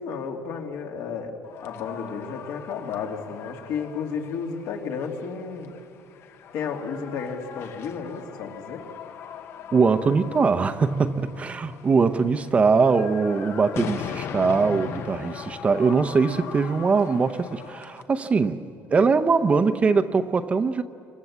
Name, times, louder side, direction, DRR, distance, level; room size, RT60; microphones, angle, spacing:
voice 1, 0.0-1.4 1.6-5.7 6.5-8.9, left 6 dB, 70° left, 1 dB, 3.1 m, -32 dB
sound 1, 1.4-18.0, left 8 dB, 45° left, 1.0 m, -40 dB
voice 2, 9.7-18.6 18.9-20.8, right 4 dB, 25° right, 10 dB, 0.8 m, -22 dB
28.0 x 26.0 x 7.4 m, 2.4 s
cardioid pair, 160°, 6 cm